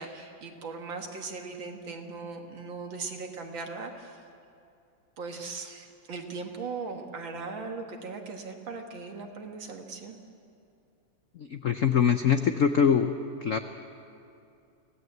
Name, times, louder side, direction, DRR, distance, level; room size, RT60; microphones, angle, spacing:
voice 1, 0.0-4.2 5.2-10.2, right 4 dB, 65° right, 3 dB, 2.5 m, -39 dB
voice 2, 11.4-13.1 13.4-13.6, left 7 dB, 65° left, 8 dB, 0.8 m, -23 dB
25.5 x 17.0 x 8.0 m, 2.6 s
omnidirectional pair, 2.3 m